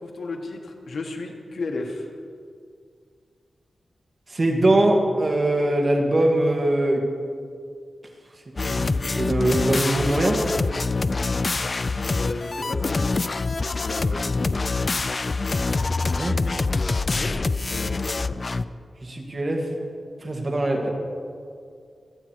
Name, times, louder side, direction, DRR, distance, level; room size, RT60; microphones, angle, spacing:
voice 1, 0.0-2.1 12.1-13.2 13.8-14.2 17.1-17.4 17.7-18.4, left 3 dB, 75° left, 2 dB, 1.6 m, -33 dB
voice 2, 4.3-7.0 8.6-10.4 16.2-16.4 19.0-19.7 20.2-20.9, right 1 dB, 35° right, 1 dB, 2.1 m, -22 dB
sound 1, 8.6-18.6, left 3 dB, 40° left, 0.4 m, -25 dB
24.5 x 8.8 x 4.6 m, 2.2 s
wide cardioid pair, 115°, 0 cm